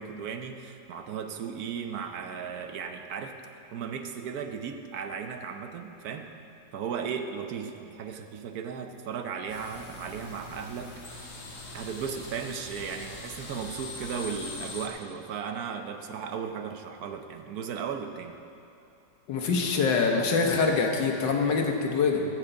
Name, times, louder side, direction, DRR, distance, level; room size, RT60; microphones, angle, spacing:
voice 1, 0.0-3.4 3.7-6.3 6.7-11.3 11.7-18.4, right 7 dB, 65° right, 6 dB, 1.1 m, -36 dB
sound 1, 9.5-14.9, left 2 dB, 65° left, 2.1 m, -42 dB
voice 2, 19.3-22.3, left 4 dB, 85° left, 2 dB, 1.8 m, -24 dB
14.0 x 6.2 x 7.9 m, 2.7 s
omnidirectional pair, 1.9 m